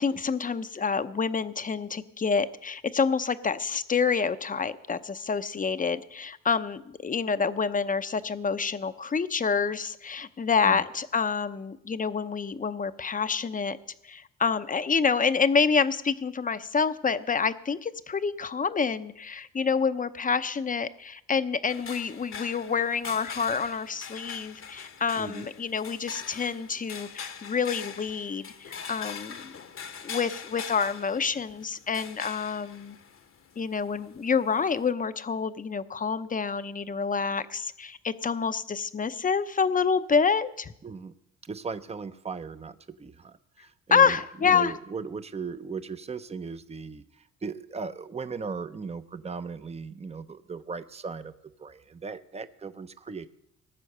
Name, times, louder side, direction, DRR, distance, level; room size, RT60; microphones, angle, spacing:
voice 1, 0.0-13.8 14.0-29.6 30.0-33.0 33.6-40.7 43.9-44.7, left 5 dB, 25° left, 11 dB, 0.8 m, -27 dB
sound 1, 21.7-34.9, left 6 dB, 45° left, 1.1 m, -42 dB
voice 2, 25.2-25.5 40.8-41.1 41.5-47.0 47.4-51.3 51.6-53.3, right 5 dB, 20° right, 11 dB, 0.8 m, -37 dB
18.5 x 8.3 x 6.7 m, 0.79 s
cardioid pair, 90°, 30 cm